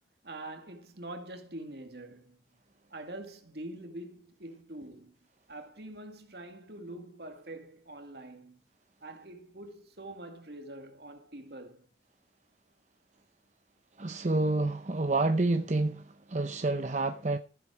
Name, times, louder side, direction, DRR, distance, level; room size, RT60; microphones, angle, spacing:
voice 1, 0.2-2.4 2.9-5.1 5.5-8.6 9.0-11.9, right 1 dB, 65° right, 2.3 m, -45 dB
voice 2, 14.0-17.4, right 2 dB, 40° right, 0.7 m, -28 dB
15.0 x 7.7 x 4.9 m
head